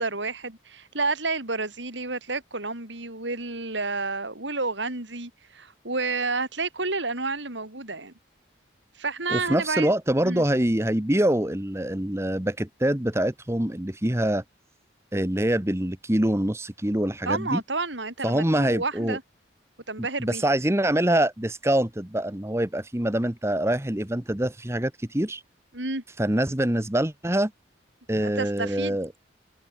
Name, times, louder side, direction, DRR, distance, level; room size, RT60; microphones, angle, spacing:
voice 1, 0.0-8.1 9.0-9.9 10.2-10.4 17.3-19.2 19.9-20.4 25.7-26.0 28.1-29.0, right 3 dB, 75° right, 5.3 m, -30 dB
voice 2, 9.3-14.4 15.1-17.6 18.2-19.2 20.2-25.4 26.2-27.5 28.1-29.1, right 1 dB, 15° right, 1.1 m, -25 dB
head